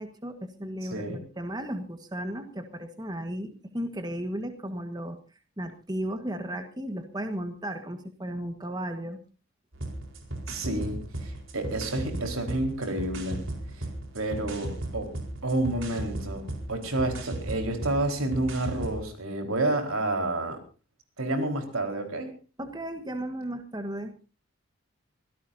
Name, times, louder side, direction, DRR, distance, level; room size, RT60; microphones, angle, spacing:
voice 1, 0.0-5.2 5.6-9.2 22.6-24.1, right 1 dB, 20° right, 7 dB, 1.4 m, -35 dB
voice 2, 0.8-1.2 10.5-13.9 14.1-15.1 15.4-20.6 21.2-22.3, right 2 dB, 85° right, 5 dB, 4.3 m, -30 dB
sound 1, 9.7-19.0, right 1 dB, 65° right, 4.3 m, -36 dB
24.5 x 17.0 x 2.7 m, 0.34 s
head